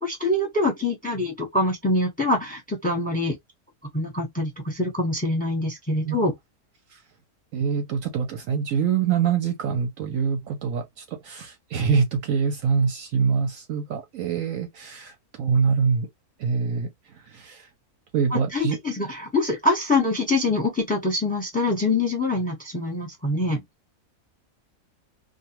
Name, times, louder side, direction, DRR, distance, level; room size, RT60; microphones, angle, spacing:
voice 1, 0.0-3.4 3.9-6.3 18.3-23.6, left 2 dB, 5° left, 0.8 m, -24 dB
voice 2, 7.5-15.1 15.4-16.1 16.4-16.9 17.1-17.7 18.1-18.8, right 6 dB, 65° right, 0.9 m, -25 dB
2.5 x 2.2 x 2.9 m
omnidirectional pair, 1.6 m